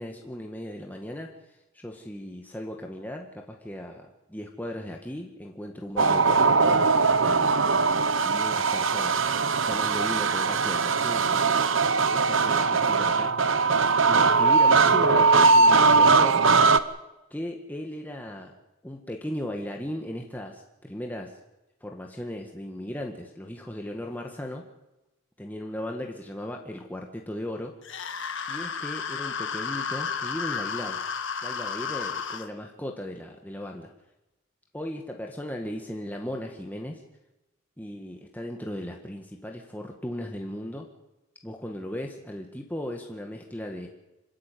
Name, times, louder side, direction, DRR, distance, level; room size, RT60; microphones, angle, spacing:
voice 1, 0.0-6.8 7.2-8.0 8.2-9.2 9.7-13.3 14.1-16.4 17.3-18.5 18.8-21.4 21.8-24.6 25.4-27.7 28.5-31.0 31.4-33.9 34.7-37.0 37.8-40.9 41.4-43.9, left 1 dB, 10° left, 2 dB, 1.8 m, -37 dB
sound 1, 6.0-16.8, right 4 dB, 65° right, 1.1 m, -20 dB
sound 2, 27.8-32.5, left 6 dB, 60° left, 1.9 m, -32 dB
26.5 x 13.5 x 9.3 m, 0.98 s
head